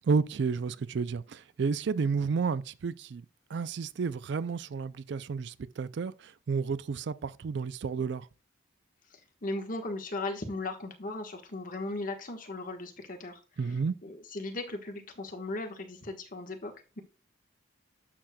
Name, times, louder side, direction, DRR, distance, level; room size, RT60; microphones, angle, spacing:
voice 1, 0.1-8.3 13.6-14.0, right 5 dB, 60° right, 0.4 m, -31 dB
voice 2, 9.1-13.4 14.0-17.0, left 2 dB, 45° left, 1.3 m, -37 dB
11.5 x 6.4 x 2.3 m
head